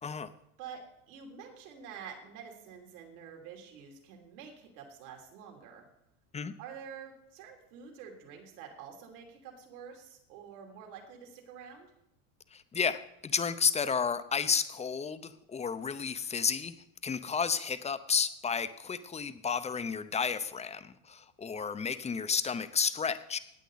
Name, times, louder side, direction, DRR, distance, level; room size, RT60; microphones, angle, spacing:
voice 1, 1.1-5.9 6.6-11.9, right 7 dB, 70° right, 2 dB, 3.4 m, -48 dB
voice 2, 12.5-16.7 17.0-23.4, left 6 dB, 15° left, 12 dB, 0.7 m, -32 dB
17.0 x 9.0 x 4.0 m, 0.82 s
supercardioid pair, 110°, 44 cm